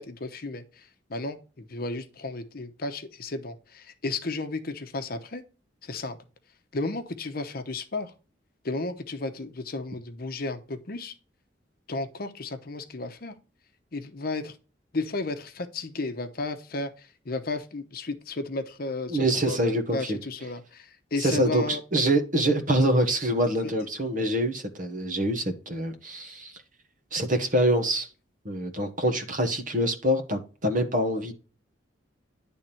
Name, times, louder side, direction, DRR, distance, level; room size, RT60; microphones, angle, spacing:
voice 1, 0.0-5.4 5.8-6.2 6.7-8.1 8.6-11.1 11.9-13.3 13.9-14.6 14.9-19.2 19.5-21.8 23.6-23.7, left 3 dB, 50° left, 0.8 m, -33 dB
voice 2, 19.1-20.2 21.2-26.5 27.1-28.1 28.4-31.3, right 1 dB, 45° right, 1.3 m, -25 dB
10.5 x 3.6 x 4.3 m
head